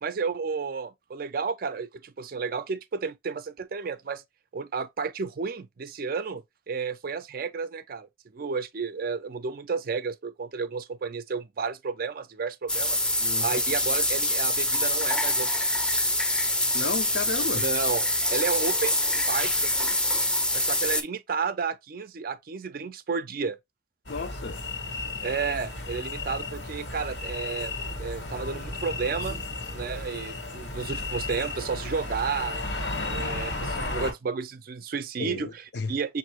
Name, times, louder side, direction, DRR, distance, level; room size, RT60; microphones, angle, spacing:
voice 1, 0.0-4.2 4.5-13.0 13.4-15.5 17.5-20.0 20.5-23.6 25.2-27.7 28.0-29.4 29.7-32.7 33.1-36.2, right 5 dB, 55° right, 0.4 m, -32 dB
sound 1, 12.7-21.0, left 1 dB, 5° left, 0.5 m, -25 dB
voice 2, 13.2-13.6 16.7-17.7 24.1-24.6 35.2-35.9, left 4 dB, 65° left, 0.5 m, -33 dB
sound 2, 24.1-34.1, left 2 dB, 85° left, 1.5 m, -34 dB
6.2 x 2.6 x 2.9 m
head